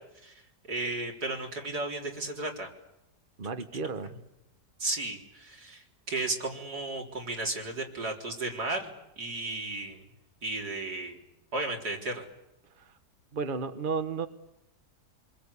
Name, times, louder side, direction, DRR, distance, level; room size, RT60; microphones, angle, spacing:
voice 1, 0.7-2.7 4.0-4.1 4.8-10.0 10.4-11.2 11.5-12.3, right 2 dB, 75° right, 1 dB, 4.5 m, -34 dB
voice 2, 3.4-4.1 12.8-12.9 13.3-14.3, right 4 dB, 35° right, 9 dB, 1.3 m, -33 dB
27.5 x 22.0 x 8.5 m, 0.90 s
omnidirectional pair, 1.7 m